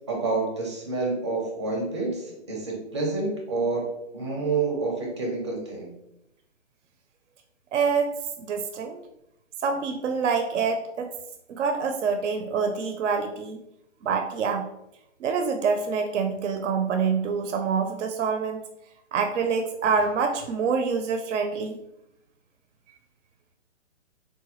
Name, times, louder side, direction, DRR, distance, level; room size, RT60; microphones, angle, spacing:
voice 1, 0.1-3.9 4.1-5.9, right 3 dB, 25° right, -1 dB, 0.5 m, -28 dB
voice 2, 7.7-9.0 9.6-11.1 11.5-13.6 14.0-14.7 15.2-18.6 19.1-21.8, right 5 dB, 75° right, 6 dB, 0.5 m, -26 dB
3.9 x 2.2 x 2.9 m, 0.83 s
hypercardioid pair, 165°, 36 cm